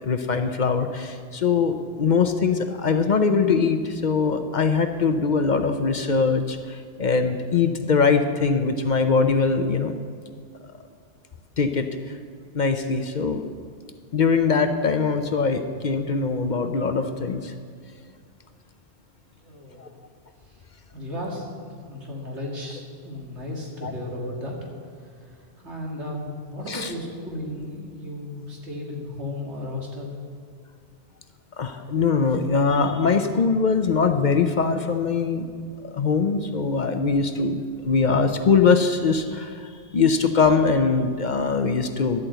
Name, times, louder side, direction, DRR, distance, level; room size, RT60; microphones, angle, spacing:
voice 1, 0.0-9.9 11.6-12.2 12.5-13.5 14.1-17.5 19.8-19.9 23.8-23.9 26.7-26.9 31.6-35.5 35.8-42.2, left 5 dB, 50° left, 8 dB, 0.7 m, -22 dB
voice 2, 19.4-19.9 20.4-20.6 20.9-24.6 25.0-30.2, left 1 dB, 85° right, -1 dB, 2.6 m, -35 dB
11.0 x 8.5 x 7.9 m, 2.1 s
omnidirectional pair, 1.1 m